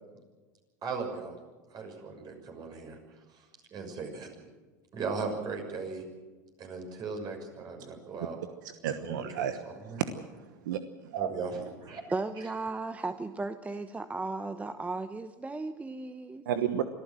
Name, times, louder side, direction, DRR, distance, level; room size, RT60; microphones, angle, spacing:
voice 1, 0.8-1.4 1.7-3.0 3.3-4.5 4.9-6.0 6.6-8.4 8.8-9.2 9.6-10.0 11.1-12.0 12.4-12.5, right 4 dB, 40° right, 4 dB, 6.3 m, -38 dB
voice 2, 8.8-9.6 9.9-10.1 10.6-11.3 16.5-16.8, right 10 dB, 75° right, 9 dB, 1.2 m, -31 dB
voice 3, 12.1-16.5, right 3 dB, 15° right, 11 dB, 0.9 m, -35 dB
25.0 x 14.0 x 7.8 m, 1.3 s
hypercardioid pair, 95°, 10 cm